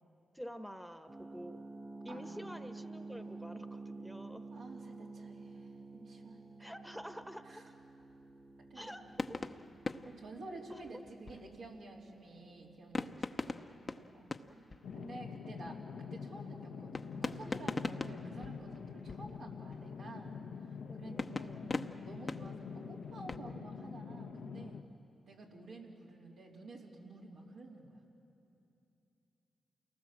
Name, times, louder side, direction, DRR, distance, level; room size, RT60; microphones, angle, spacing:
voice 1, 0.3-1.6 2.0-4.4 6.6-7.7 8.7-9.4 10.7-10.9 14.4-14.8 20.8-21.8, equal, ahead, 8 dB, 1.2 m, -49 dB
sound 1, 1.1-15.8, right 3 dB, 25° right, 1.5 m, -51 dB
voice 2, 2.1-2.6 4.5-6.7 7.4-7.7 8.6-9.1 10.0-14.3 14.9-24.8 25.3-28.0, right 2 dB, 80° right, -4 dB, 3.5 m, -51 dB
sound 2, 9.1-11.8 12.9-15.3 15.6-15.8 16.9-19.9 21.2-23.4, left 3 dB, 40° left, 0.9 m, -42 dB
sound 3, 14.8-24.8, left 6 dB, 80° left, 1.0 m, -45 dB
29.0 x 19.0 x 7.6 m, 2.8 s
supercardioid pair, 45°, 0 cm